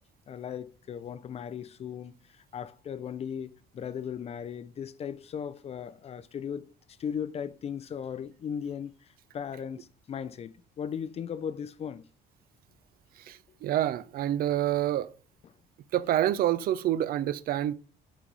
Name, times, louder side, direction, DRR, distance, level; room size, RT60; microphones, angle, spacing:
voice 1, 0.3-6.7 7.0-12.0, left 8 dB, 40° left, 0.4 m, -37 dB
voice 2, 13.2-15.1 15.9-17.7, right 12 dB, 60° right, 0.4 m, -27 dB
6.2 x 4.0 x 4.7 m
cardioid pair, 110°, 17 cm